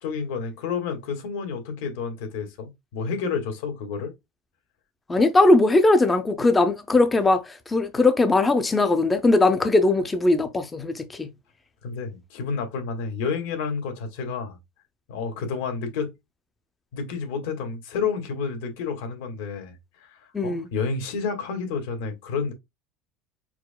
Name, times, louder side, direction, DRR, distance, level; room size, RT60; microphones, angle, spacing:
voice 1, 0.0-4.1 11.8-14.6 15.1-16.1 16.9-22.5, left 5 dB, 80° left, 1.8 m, -30 dB
voice 2, 5.1-11.3 20.3-20.7, left 2 dB, 10° left, 0.4 m, -20 dB
4.8 x 4.7 x 2.2 m
cardioid pair, 180°, 0 cm